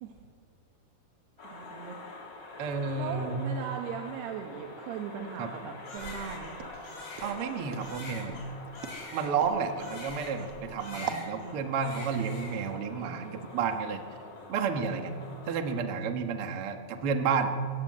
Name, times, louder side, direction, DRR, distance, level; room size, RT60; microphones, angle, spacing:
sound 1, 1.4-15.8, left 2 dB, 30° left, 2.5 m, -47 dB
voice 1, 1.4-2.0 3.0-6.7 10.9-11.5 14.7-14.9 15.2-15.3, right 6 dB, 85° right, 2 dB, 3.6 m, -39 dB
voice 2, 2.6-3.4 5.4-5.5 7.2-8.4 9.1-14.0 14.5-15.1 15.5-17.5, right 5 dB, 50° right, 5 dB, 1.7 m, -31 dB
Crying sobbing, 5.8-10.5 10.8-11.5 11.8-12.7, left 3 dB, 70° left, 6.7 m, -45 dB
Walk footsteps, 6.0-11.3, right 7 dB, 70° right, 1.4 m, -42 dB
24.5 x 17.0 x 7.7 m, 2.2 s
omnidirectional pair, 4.6 m